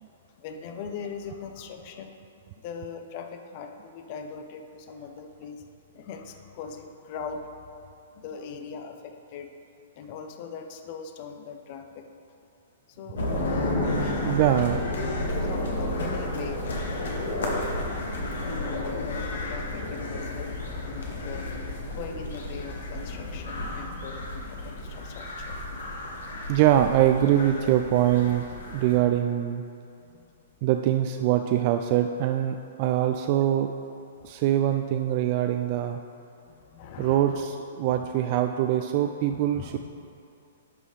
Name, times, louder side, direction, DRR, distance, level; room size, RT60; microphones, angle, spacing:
voice 1, 0.4-2.1 2.6-5.6 5.9-7.5 8.1-9.5 10.0-12.1 13.0-13.3 14.0-14.7 15.4-16.6 17.2-17.4 18.4-21.5 21.9-25.6 29.0-29.2 36.5-37.5 37.8-38.2 39.3-39.8, left 6 dB, 45° left, 5 dB, 0.7 m, -40 dB
sound 1, 13.2-29.0, left 1 dB, 65° left, 1.2 m, -32 dB
voice 2, 14.2-14.8 26.5-29.6 30.6-33.7 34.2-36.0 37.0-39.8, right 11 dB, 45° right, 6 dB, 0.3 m, -23 dB
12.0 x 5.4 x 3.2 m, 2.6 s
figure-of-eight pair, 115°, 0 cm